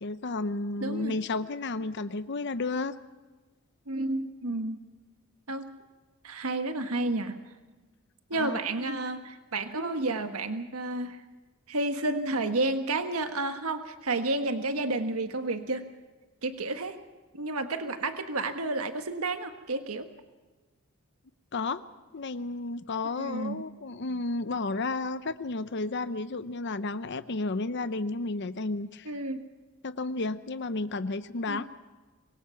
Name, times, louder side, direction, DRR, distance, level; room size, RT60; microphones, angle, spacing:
voice 1, 0.0-3.0 8.3-8.6 21.5-21.8 22.1-29.1 29.8-31.7, left 3 dB, 55° left, 13 dB, 0.7 m, -32 dB
voice 2, 0.8-1.1 3.9-4.8 5.5-5.8 6.2-7.4 8.3-11.2 11.7-15.9 16.4-17.0 17.3-20.1 23.2-23.6 29.0-29.4 31.5-31.6, right 2 dB, 80° right, 7 dB, 1.5 m, -31 dB
25.5 x 22.0 x 5.8 m, 1.3 s
head